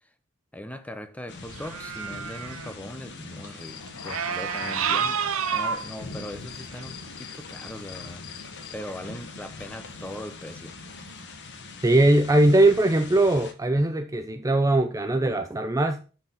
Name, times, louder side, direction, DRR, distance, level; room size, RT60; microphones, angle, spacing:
voice 1, 0.5-8.3 8.7-10.7, left 1 dB, 5° left, 0.8 m, -40 dB
sound 1, 1.3-13.5, left 3 dB, 55° left, 1.3 m, -42 dB
sound 2, 1.5-2.7 4.1-5.9 6.7-6.8, right 7 dB, 75° right, 0.8 m, -29 dB
Human voice / Cricket, 3.6-8.7, left 7 dB, 85° left, 0.7 m, -43 dB
voice 2, 11.8-16.0, right 1 dB, 15° right, 0.5 m, -20 dB
9.7 x 4.7 x 5.6 m
head